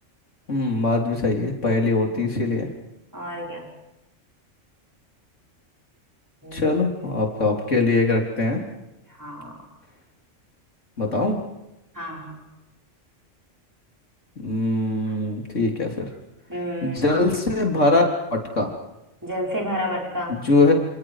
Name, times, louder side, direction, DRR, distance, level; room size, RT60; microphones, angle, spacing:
voice 1, 0.5-2.7 6.5-8.6 11.0-11.4 14.4-16.1 16.8-18.0 18.3-18.7 20.3-20.7, left 2 dB, 80° left, 1 dB, 3.9 m, -22 dB
voice 2, 3.1-3.7 6.4-6.7 7.0-7.1 9.1-9.6 11.9-12.4 15.1-15.2 16.5-17.1 19.2-20.4, equal, 15° right, -1 dB, 5.5 m, -31 dB
28.5 x 28.0 x 4.9 m, 0.95 s
omnidirectional pair, 1.3 m